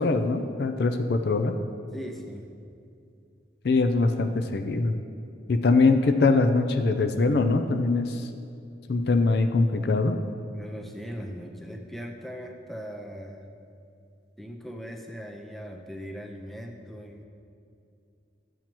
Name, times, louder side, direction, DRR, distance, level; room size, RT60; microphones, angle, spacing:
voice 1, 0.0-1.5 3.6-5.0 5.5-8.3 8.9-10.2, left 3 dB, 55° left, 7 dB, 0.4 m, -22 dB
voice 2, 1.9-2.5 10.5-13.5 14.4-17.3, equal, ahead, 1 dB, 0.5 m, -39 dB
12.5 x 7.3 x 3.0 m, 2.5 s
head